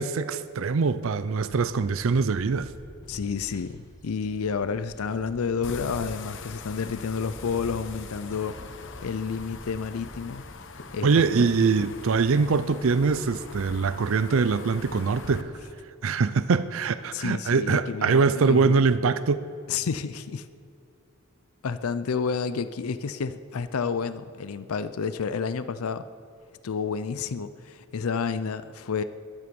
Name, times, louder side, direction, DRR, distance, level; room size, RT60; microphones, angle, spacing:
voice 1, 0.0-2.7 11.0-15.5 16.0-19.4, right 4 dB, 65° right, 14 dB, 0.5 m, -23 dB
sound 1, 1.4-15.6, equal, 15° left, 1.7 m, -49 dB
voice 2, 3.1-8.6 9.0-10.4 10.9-11.5 17.1-18.8 19.7-20.5 21.6-26.1 26.6-29.0, left 5 dB, 75° left, 13 dB, 0.5 m, -30 dB
sound 2, 5.6-15.4, left 4 dB, 60° left, 0.9 m, -42 dB
22.0 x 9.6 x 5.3 m, 2.4 s
head